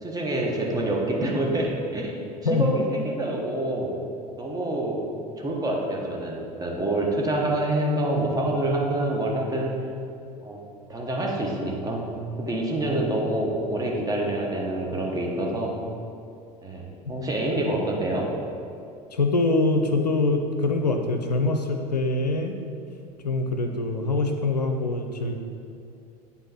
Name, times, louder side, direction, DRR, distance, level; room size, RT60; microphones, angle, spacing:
voice 1, 0.0-3.9 4.4-5.1 5.4-9.8 10.4-10.6 10.9-15.7 16.6-18.3, right 1 dB, 20° right, -1 dB, 1.3 m, -27 dB
voice 2, 19.1-22.6 23.2-25.4, left 2 dB, 85° left, 5 dB, 0.5 m, -24 dB
8.8 x 3.6 x 4.3 m, 2.6 s
figure-of-eight pair, 70°, 20 cm